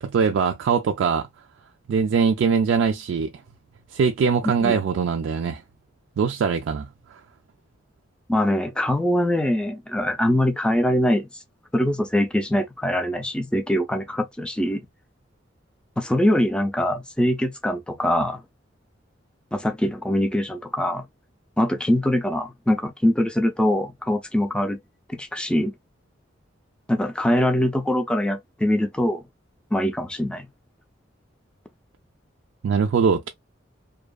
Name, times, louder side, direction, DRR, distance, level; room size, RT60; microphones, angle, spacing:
voice 1, 0.0-1.3 1.9-3.3 3.9-5.6 6.2-6.9 32.6-33.3, right 6 dB, 70° right, 0.3 m, -22 dB
voice 2, 8.3-11.3 11.7-14.8 16.0-18.4 19.5-21.0 21.6-24.8 25.1-25.7 26.9-29.2 29.7-30.5, left 1 dB, 5° left, 0.4 m, -23 dB
2.7 x 2.3 x 2.2 m
head